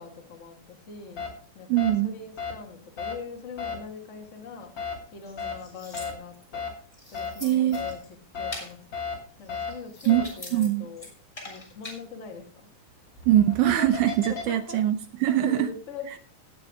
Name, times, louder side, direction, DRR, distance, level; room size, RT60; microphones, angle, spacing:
voice 1, 0.0-4.7 5.1-6.7 7.1-8.8 9.4-11.1 11.4-12.7 14.3-14.8 15.4-16.2, left 5 dB, 85° left, 3 dB, 0.6 m, -42 dB
sound 1, 1.2-1.3 1.8-1.9 2.4-2.5 3.0-3.1 3.6-3.7 4.8-4.9 5.4-5.5 5.9-6.1 6.5-6.7 7.1-7.3 7.7-7.9 8.3-8.5 8.9-9.1 9.5-9.7 10.1-10.2 13.1-14.4, left 6 dB, 30° left, 3.1 m, -33 dB
voice 2, 1.7-2.1 7.4-7.8 10.1-10.2 10.5-10.9 13.3-15.7, right 12 dB, 85° right, 9 dB, 1.7 m, -22 dB
sound 2, 5.2-6.5 6.9-8.1 8.5-8.7 9.4-10.7 11.0-12.0, left 1 dB, 10° left, 3.2 m, -43 dB
18.0 x 8.0 x 3.6 m, 0.42 s
omnidirectional pair, 4.4 m